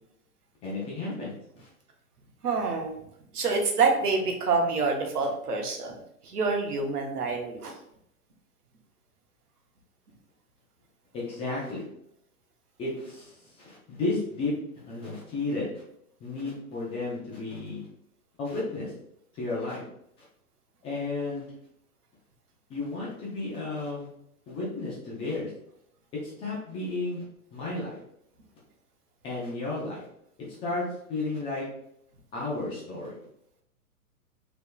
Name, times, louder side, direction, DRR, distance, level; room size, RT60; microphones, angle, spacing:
voice 1, 0.6-1.7 11.1-11.8 12.8-15.8 16.2-17.8 18.4-18.9 19.3-19.9 20.8-21.5 22.7-24.1 24.5-25.5 26.2-27.2 27.5-28.0 29.2-30.1 30.6-31.7 32.3-33.2, left 2 dB, 15° left, -6 dB, 0.5 m, -33 dB
voice 2, 2.4-2.9 3.3-5.9 6.2-7.7, right 4 dB, 80° right, 2 dB, 1.0 m, -27 dB
3.5 x 3.0 x 2.2 m, 0.74 s
hypercardioid pair, 125°, 45 cm